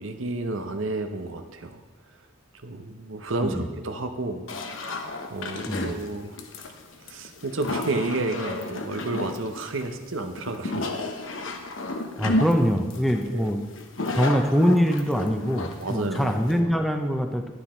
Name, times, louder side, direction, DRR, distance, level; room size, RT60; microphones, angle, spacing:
voice 1, 0.0-2.3 2.5-6.4 7.0-10.9 11.4-11.5 13.3-13.5 15.8-16.6, right 2 dB, 85° right, 6 dB, 0.9 m, -31 dB
sound 1, 4.5-16.6, left 2 dB, 85° left, 1.1 m, -32 dB
voice 2, 12.2-13.6 14.1-17.5, equal, ahead, 4 dB, 0.6 m, -23 dB
11.5 x 9.7 x 4.4 m, 1.2 s
head